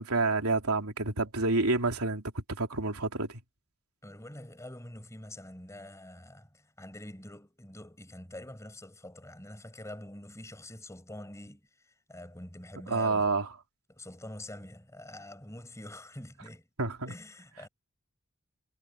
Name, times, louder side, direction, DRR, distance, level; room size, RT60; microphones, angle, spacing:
voice 1, 0.0-3.4 12.9-13.5 16.8-17.1, right 3 dB, 85° right, 3.2 m, -29 dB
voice 2, 4.0-13.3 13.9-16.7 17.1-17.7, left 1 dB, 15° left, 6.2 m, -46 dB
head